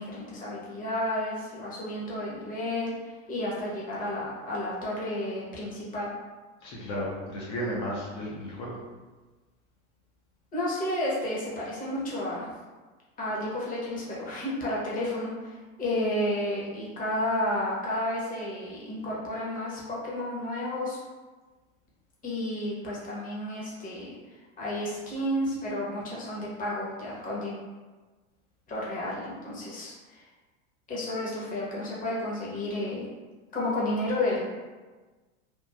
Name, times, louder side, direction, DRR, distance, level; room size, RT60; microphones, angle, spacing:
voice 1, 0.0-6.1 10.5-12.5 13.2-21.0 22.2-24.2 24.6-27.6 28.7-30.2 30.9-33.1 33.5-34.4, left 1 dB, 20° left, -5 dB, 0.8 m, -31 dB
voice 2, 6.6-8.8, equal, 50° left, -5 dB, 0.7 m, -33 dB
3.1 x 2.3 x 2.3 m, 1.3 s
hypercardioid pair, 105°, 39 cm